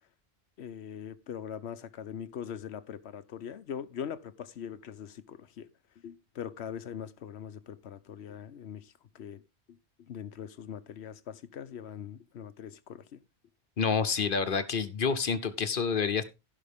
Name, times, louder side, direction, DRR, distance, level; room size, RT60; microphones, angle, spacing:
voice 1, 0.6-5.7 6.0-9.4 9.7-9.8 10.1-13.2, left 8 dB, 90° left, 1.0 m, -42 dB
voice 2, 13.8-16.2, left 5 dB, 55° left, 1.1 m, -28 dB
15.5 x 5.8 x 3.5 m
omnidirectional pair, 1.1 m